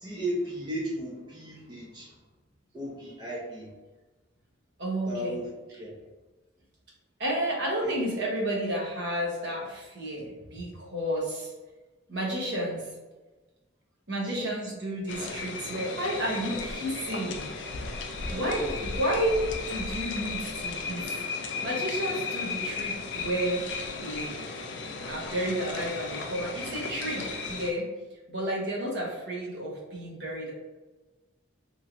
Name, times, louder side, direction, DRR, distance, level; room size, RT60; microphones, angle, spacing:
voice 1, 0.0-2.2 2.7-3.7 5.1-5.5 5.8-5.9 7.8-7.9 14.2-14.5 18.3-18.8, equal, 25° right, -5 dB, 0.6 m, -35 dB
voice 2, 4.8-5.4 7.2-11.5 12.1-12.9 14.1-17.5 18.3-19.4 19.7-21.1 21.6-24.4 25.0-27.9 28.3-30.5, right 1 dB, 60° right, -3 dB, 1.0 m, -31 dB
sound 1, 15.1-27.7, left 4 dB, 60° left, 0.4 m, -35 dB
3.0 x 3.0 x 2.5 m, 1.2 s
head